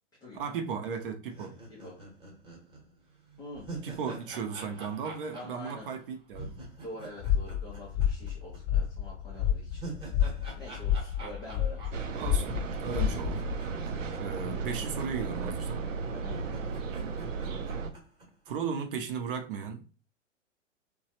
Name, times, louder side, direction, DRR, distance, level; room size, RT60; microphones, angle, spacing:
voice 1, 0.3-1.6 3.8-6.6 12.2-13.4 14.2-15.8 18.5-19.9, right 6 dB, 45° right, 0.6 m, -36 dB
sound 1, 1.3-8.6 8.8-8.9 9.4-14.7 14.9-15.0 15.8-15.9 16.3-18.5, right 2 dB, 15° right, 0.9 m, -45 dB
voice 2, 3.4-3.7 5.3-5.9 6.8-9.8 10.6-12.0 16.1-16.4, left 1 dB, 10° left, 0.3 m, -45 dB
sound 2, 7.2-13.6, left 9 dB, 35° left, 0.7 m, -30 dB
sound 3, 11.9-17.9, right 5 dB, 85° right, 0.5 m, -35 dB
3.1 x 2.2 x 2.8 m
figure-of-eight pair, 115°, 38 cm